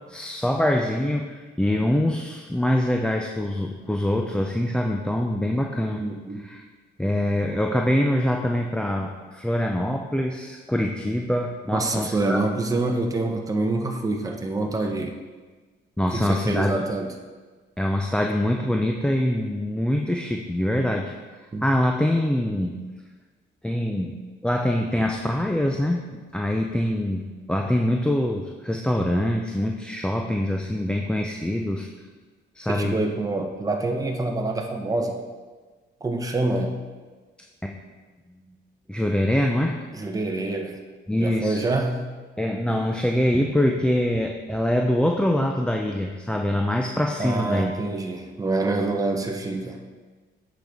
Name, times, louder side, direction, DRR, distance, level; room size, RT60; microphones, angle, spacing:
voice 1, 0.1-6.0 6.3-6.7 7.0-12.4 16.0-16.7 17.8-21.1 21.6-22.8 23.6-31.9 32.5-33.0 37.6-37.8 38.9-39.8 41.1-41.6 42.4-47.7, left 1 dB, 5° left, 2 dB, 0.5 m, -24 dB
voice 2, 6.0-6.4 11.7-15.2 16.1-17.1 21.5-21.6 32.7-35.2 36.0-36.8 39.9-40.8 41.2-42.0 47.2-49.8, right 2 dB, 15° right, 2 dB, 0.9 m, -26 dB
8.0 x 6.1 x 3.6 m, 1.4 s
cardioid pair, 90°, 20 cm